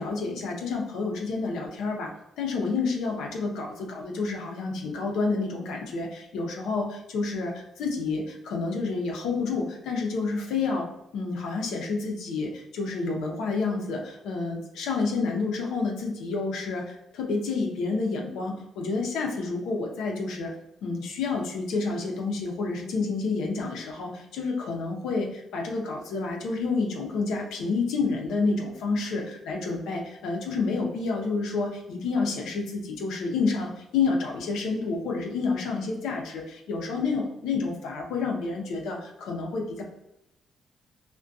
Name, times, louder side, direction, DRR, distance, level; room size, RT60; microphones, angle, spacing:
voice 1, 0.0-10.9 11.1-20.5 20.8-39.8, left 4 dB, 85° left, 0 dB, 0.5 m, -29 dB
2.3 x 2.1 x 2.5 m, 0.84 s
cardioid pair, 90°, 0 cm